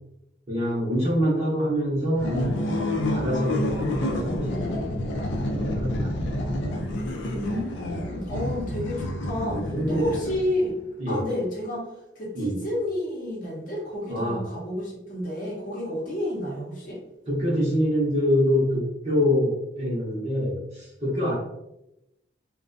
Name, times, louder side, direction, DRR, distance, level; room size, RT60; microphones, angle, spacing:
voice 1, 0.5-2.6 2.9-6.4 9.4-10.1 11.0-11.2 12.3-12.6 14.1-14.4 17.3-21.3, equal, 35° right, -6 dB, 0.7 m, -26 dB
sound 1, 2.1-10.7, left 1 dB, 80° left, 0.4 m, -29 dB
voice 2, 7.3-10.8 11.1-11.9 12.2-17.0, left 1 dB, 45° left, -4 dB, 0.7 m, -30 dB
2.5 x 2.1 x 2.5 m, 0.90 s
head